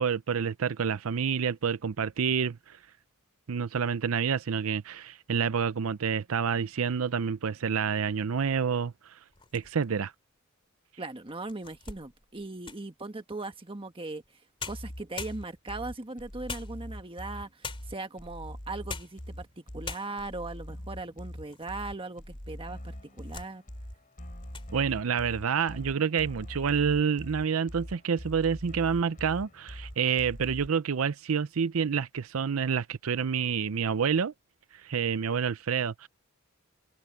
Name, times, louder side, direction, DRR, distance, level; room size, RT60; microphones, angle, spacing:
voice 1, 0.0-2.8 3.5-9.2 9.5-10.1 24.7-34.3 34.7-36.1, right 6 dB, 75° right, 0.5 m, -28 dB
sound 1, 9.3-10.0 10.6-10.7 11.3-13.0 14.2-14.3 14.6-15.8 16.5-17.2 17.6-18.1 18.7-19.2 19.5-19.6 19.8-20.4 21.0-21.8 22.1-22.2 22.9-23.5 23.9-24.1 24.4-24.7, left 5 dB, 25° left, 3.1 m, -42 dB
voice 2, 11.0-14.4 14.7-23.6, right 2 dB, 25° right, 1.4 m, -39 dB
sound 2, 14.7-30.7, equal, 40° left, 5.0 m, -43 dB
head